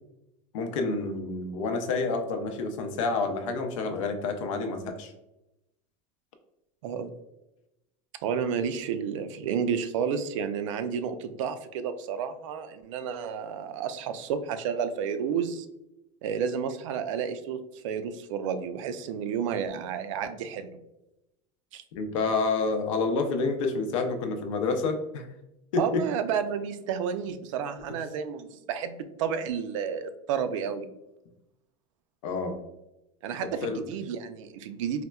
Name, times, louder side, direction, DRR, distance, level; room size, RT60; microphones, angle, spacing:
voice 1, 0.5-5.1 22.0-25.3 25.7-26.0 32.2-32.6 33.6-33.8, left 3 dB, 80° left, 6 dB, 0.6 m, -28 dB
voice 2, 8.2-15.7 16.2-20.8 21.7-21.8 25.8-30.9 33.2-35.0, right 7 dB, 80° right, 10 dB, 0.4 m, -31 dB
4.1 x 2.1 x 2.2 m, 0.91 s
supercardioid pair, 175°, 16 cm